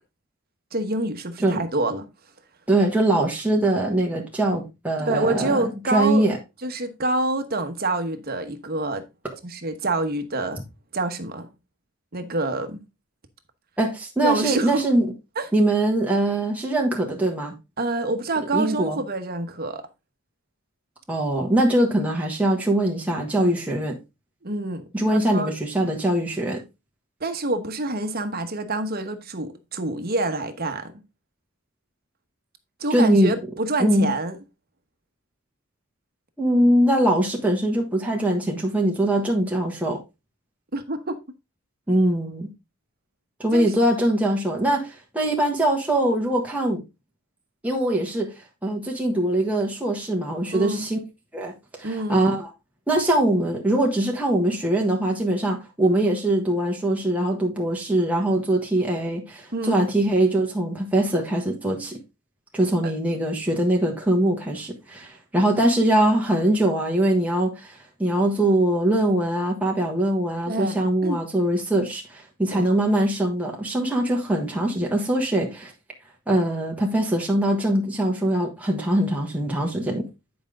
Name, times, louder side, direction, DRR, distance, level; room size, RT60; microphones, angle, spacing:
voice 1, 0.7-2.1 5.0-6.2 6.6-9.0 9.4-10.6 10.9-11.5 12.1-12.8 14.2-14.8 15.4-15.5 17.8-19.9 24.4-25.5 27.2-30.9 32.8-34.4 40.7-41.2 43.5-43.7 50.5-50.9 51.8-52.2 59.5-59.8 62.8-62.9 70.5-70.8 71.0-71.2 72.5-72.7, right 2 dB, 45° right, 1.1 m, -27 dB
voice 2, 2.7-5.6 5.9-6.4 13.8-15.1 15.5-17.5 18.5-19.0 21.1-24.0 24.9-26.6 32.9-33.3 33.8-34.1 36.4-40.0 41.9-42.5 43.4-46.8 47.6-48.3 48.6-51.0 51.3-52.5 52.9-62.0 62.5-75.7 76.3-80.1, right 1 dB, 5° right, 1.5 m, -22 dB
10.0 x 5.1 x 3.6 m
head